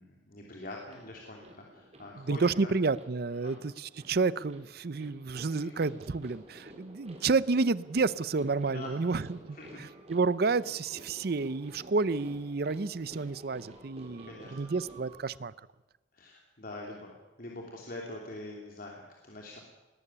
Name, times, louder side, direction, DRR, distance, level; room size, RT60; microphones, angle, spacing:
voice 1, 0.0-1.5 1.7-2.7 3.4-3.5 5.4-5.7 8.7-9.0 9.5-9.8 14.2-14.5 16.1-17.1 17.4-19.6, left 2 dB, 55° left, -1 dB, 3.0 m, -44 dB
sound 1, 0.9-15.2, right 1 dB, 35° right, 3.9 m, -52 dB
voice 2, 2.2-15.5, right 4 dB, 60° right, 19 dB, 0.6 m, -30 dB
20.0 x 14.0 x 9.8 m, 1.1 s
head